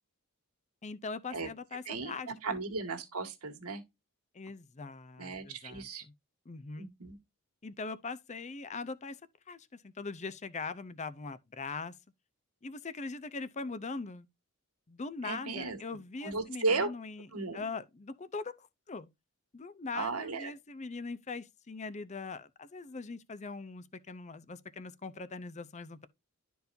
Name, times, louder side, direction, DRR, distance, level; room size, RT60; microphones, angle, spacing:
voice 1, 0.8-2.6 4.3-5.9 6.5-6.9 7.6-9.2 9.5-11.9 12.6-14.3 14.9-17.3 17.5-19.1 19.5-26.1, left 4 dB, 30° left, 0.6 m, -41 dB
voice 2, 1.9-3.8 5.2-6.0 6.8-7.2 15.2-15.8 16.2-16.9 17.3-17.6 19.9-20.5, right 4 dB, 90° right, 1.9 m, -35 dB
12.0 x 4.6 x 2.6 m
head